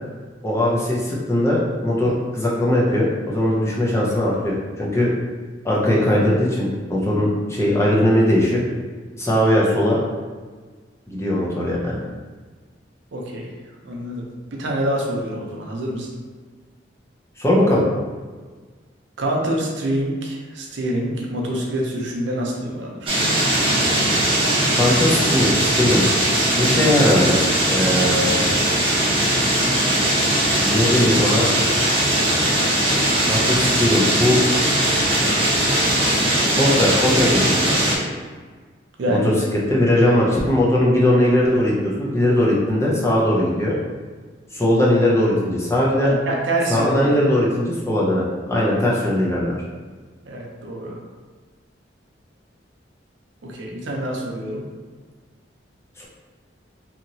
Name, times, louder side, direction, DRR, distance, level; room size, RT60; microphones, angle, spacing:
voice 1, 0.4-5.1 5.6-8.6 9.2-10.0 11.1-12.0 17.4-17.8 24.8-26.0 26.6-27.4 27.7-28.3 30.6-31.6 33.2-34.4 36.6-37.6 39.1-43.7 44.5-46.1 46.7-49.5 56.0-56.1, left 1 dB, 15° left, -5 dB, 0.5 m, -19 dB
voice 2, 13.1-13.5 13.8-16.1 19.2-23.1 26.5-26.8 39.0-39.3 46.0-47.1 50.2-51.0 53.4-54.6, right 1 dB, 75° right, -1 dB, 0.6 m, -26 dB
sound 1, 23.1-38.0, right 1 dB, 30° right, 0.7 m, -19 dB
2.9 x 2.8 x 2.7 m, 1.4 s
head